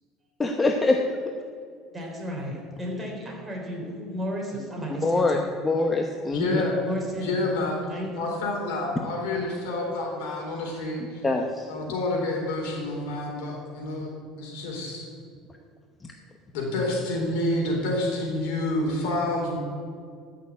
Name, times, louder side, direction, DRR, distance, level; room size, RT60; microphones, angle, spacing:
voice 1, 0.4-1.0 5.0-5.4 5.6-6.6 11.2-11.5, left 3 dB, 15° left, 2 dB, 0.8 m, -23 dB
voice 2, 1.9-5.7 6.4-7.3 7.6-8.3, equal, 10° right, -3 dB, 3.7 m, -34 dB
voice 3, 6.3-6.8 7.1-7.8 8.2-11.3 11.7-15.1 16.5-19.6, left 2 dB, 90° left, 0 dB, 3.9 m, -28 dB
13.5 x 6.7 x 8.4 m, 2.2 s
cardioid pair, 140°, 0 cm